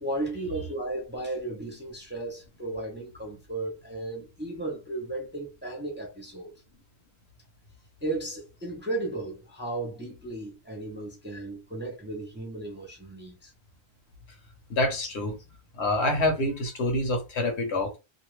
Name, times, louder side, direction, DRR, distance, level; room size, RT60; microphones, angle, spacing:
voice 1, 0.0-6.5 8.0-13.5, right 2 dB, 10° right, 0.7 m, -35 dB
voice 2, 14.7-15.4 15.7-18.0, left 1 dB, 80° left, 1.2 m, -26 dB
2.6 x 2.4 x 3.1 m
omnidirectional pair, 1.1 m